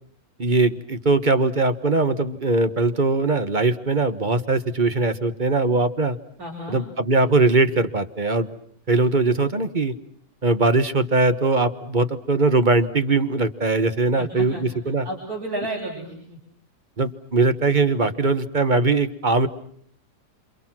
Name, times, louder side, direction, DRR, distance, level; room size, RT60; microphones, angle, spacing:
voice 1, 0.4-6.2 6.7-8.5 8.9-9.9 10.4-15.1 17.0-19.5, right 3 dB, 35° right, 10 dB, 1.3 m, -21 dB
voice 2, 6.4-6.8 14.2-16.4, right 1 dB, 85° right, -2 dB, 7.0 m, -32 dB
28.5 x 27.5 x 6.1 m, 0.62 s
omnidirectional pair, 1.6 m